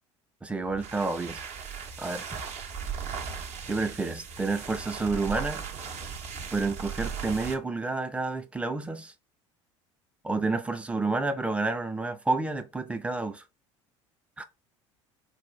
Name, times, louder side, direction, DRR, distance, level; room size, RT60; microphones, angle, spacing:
voice 1, 0.4-1.5 2.0-2.4 3.7-5.6 6.5-9.1 10.2-13.4 14.4-14.5, right 3 dB, 5° right, 0.5 m, -30 dB
sound 1, 0.6-7.6, right 6 dB, 40° right, 0.8 m, -37 dB
3.6 x 2.3 x 3.1 m
figure-of-eight pair, 70°, 16 cm